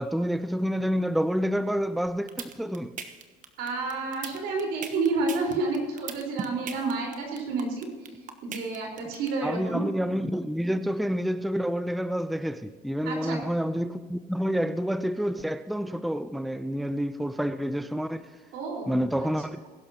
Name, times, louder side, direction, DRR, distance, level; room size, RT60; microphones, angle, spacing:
voice 1, 0.0-2.9 9.4-18.3 18.9-19.6, equal, ahead, 0.6 m, -28 dB
sound 1, 2.1-9.3, right 7 dB, 50° right, 1.3 m, -37 dB
voice 2, 3.6-7.9 8.4-9.8 13.0-13.4 18.5-19.0, right 3 dB, 90° right, 4.4 m, -30 dB
22.0 x 11.5 x 2.9 m
cardioid pair, 110°, 17 cm